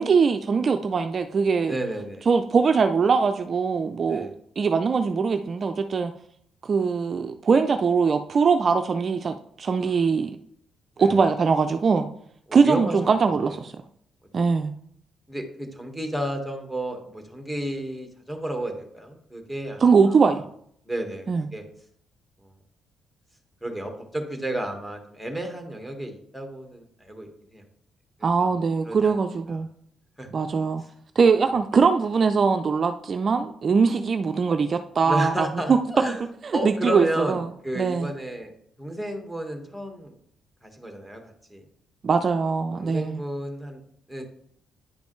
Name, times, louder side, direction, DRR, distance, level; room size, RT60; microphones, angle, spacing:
voice 1, 0.0-1.8 2.3-4.3 4.6-6.1 6.6-10.3 11.0-12.1 12.5-13.8 14.3-14.7 19.8-20.4 21.3-21.5 28.2-29.7 30.3-30.8 31.2-35.8 36.4-37.5 37.8-38.1 42.0-43.2, right 5 dB, 45° right, 7 dB, 0.4 m, -22 dB
voice 2, 1.7-2.3 4.1-4.3 9.8-10.0 11.0-11.2 12.5-12.9 15.3-20.4 20.8-21.6 22.4-22.5 23.6-27.6 28.2-28.5 28.8-29.1 30.2-30.3 35.0-36.3 36.5-38.5 38.8-40.1 40.6-41.6 42.7-43.8 44.1-44.2, right 1 dB, ahead, 3 dB, 1.6 m, -32 dB
9.9 x 5.2 x 3.2 m, 0.67 s
cardioid pair, 90°, 0 cm